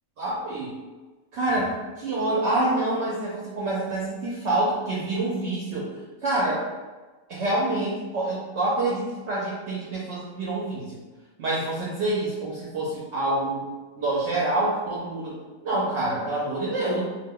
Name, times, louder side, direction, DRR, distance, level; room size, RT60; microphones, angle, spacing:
voice 1, 0.2-0.8 1.3-5.9 6.2-6.7 7.3-11.0 11.4-13.7 14.0-15.4 15.6-17.0, right 2 dB, 65° right, -6 dB, 0.8 m, -27 dB
2.4 x 2.1 x 3.5 m, 1.3 s
omnidirectional pair, 1.4 m